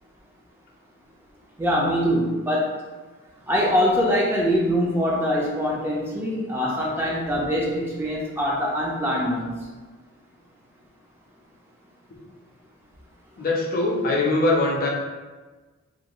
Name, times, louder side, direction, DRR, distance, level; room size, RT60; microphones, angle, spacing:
voice 1, 1.6-2.8 3.5-9.6, equal, 10° right, -4 dB, 0.3 m, -23 dB
voice 2, 13.4-14.9, left 2 dB, 45° left, -2 dB, 0.6 m, -22 dB
2.5 x 2.2 x 2.9 m, 1.3 s
head